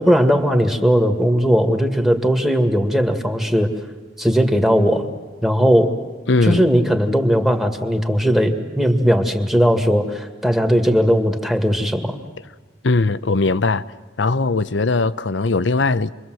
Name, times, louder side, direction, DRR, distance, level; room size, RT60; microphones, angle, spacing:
voice 1, 0.0-3.7 4.2-5.1 5.4-5.9 6.4-12.2, equal, ahead, 1.9 m, -18 dB
voice 2, 6.3-6.6 12.8-13.8 14.2-16.1, left 3 dB, 85° left, 0.8 m, -19 dB
29.0 x 23.0 x 7.7 m
head